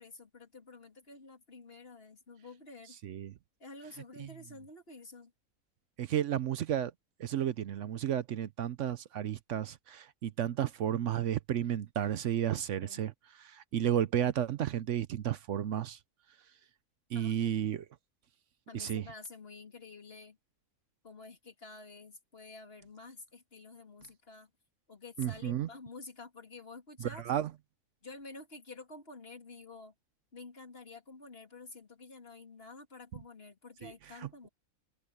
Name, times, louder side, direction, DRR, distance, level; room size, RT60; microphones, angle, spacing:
voice 1, 0.0-3.0 3.6-5.3 12.8-13.0 17.1-17.5 18.7-20.4 21.0-24.5 24.9-27.2 28.0-29.9 30.3-34.5, left 3 dB, 40° left, 3.1 m, -50 dB
voice 2, 3.0-3.3 6.0-6.9 7.2-13.1 13.4-16.0 17.1-17.8 18.7-19.0 25.2-25.7 27.0-27.5 33.8-33.9 34.2-34.3, right 10 dB, 65° right, 0.9 m, -32 dB
open air
omnidirectional pair, 1.6 m